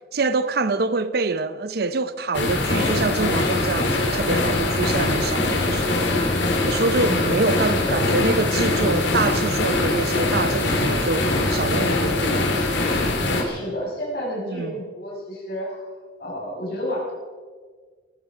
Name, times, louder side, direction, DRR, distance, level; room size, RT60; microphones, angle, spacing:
voice 1, 0.1-6.1 6.5-12.5 14.5-14.7, right 3 dB, 55° right, 0.6 m, -25 dB
sound 1, 2.3-13.4, left 2 dB, 70° left, 2.5 m, -22 dB
voice 2, 7.1-7.4 7.7-8.1 13.3-15.9 16.2-17.1, equal, 55° left, 5.7 m, -31 dB
18.0 x 15.0 x 4.9 m
head